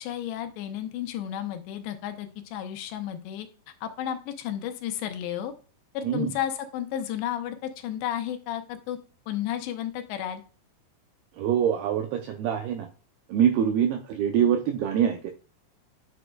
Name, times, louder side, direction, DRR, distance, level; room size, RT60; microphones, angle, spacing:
voice 1, 0.0-3.5 3.8-5.5 5.9-9.0 9.3-10.4, left 11 dB, 80° left, 7 dB, 2.9 m, -32 dB
voice 2, 11.4-12.9 13.3-15.3, right 9 dB, 85° right, 5 dB, 2.3 m, -24 dB
9.5 x 6.2 x 2.3 m, 0.36 s
omnidirectional pair, 5.2 m